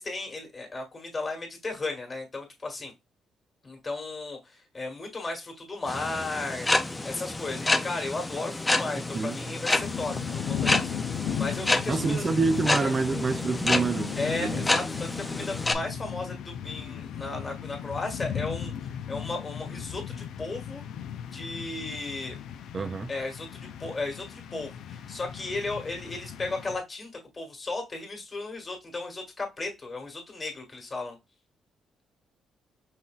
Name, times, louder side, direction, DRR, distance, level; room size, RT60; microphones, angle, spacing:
voice 1, 0.0-2.9 3.6-6.7 7.0-10.9 11.3-12.2 12.8-12.9 14.2-20.8 21.3-22.4 23.1-31.2, left 3 dB, 30° left, 1.8 m, -35 dB
sound 1, 5.9-15.7, left 2 dB, 15° left, 0.5 m, -29 dB
sound 2, 9.8-26.8, left 8 dB, 80° left, 0.4 m, -36 dB
voice 2, 11.9-14.7 22.7-23.1, right 4 dB, 35° right, 0.4 m, -27 dB
5.6 x 2.7 x 2.4 m
cardioid pair, 90°, 0 cm